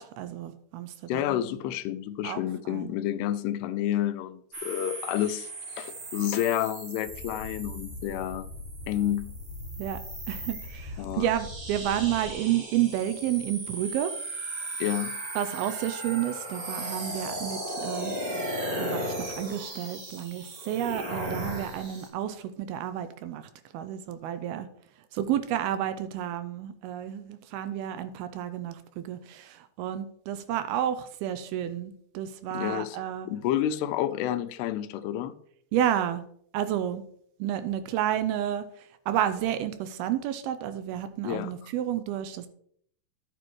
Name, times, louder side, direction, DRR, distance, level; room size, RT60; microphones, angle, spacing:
voice 1, 0.0-1.4 2.2-2.9 9.8-10.0 10.3-14.1 15.4-18.1 18.8-23.4 23.7-24.7 25.1-33.3 35.7-36.2 36.5-37.0 37.4-42.5, right 11 dB, 80° right, 2.4 m, -31 dB
voice 2, 1.1-8.5 8.9-9.3 11.0-11.3 14.8-15.1 32.5-33.0 33.3-35.3 41.2-41.5, left 12 dB, 85° left, 2.6 m, -29 dB
sound 1, 4.5-22.1, right 1 dB, 50° right, 1.1 m, -37 dB
sound 2, 7.1-12.3, left 1 dB, 70° left, 1.9 m, -41 dB
11.5 x 7.9 x 3.1 m
omnidirectional pair, 4.6 m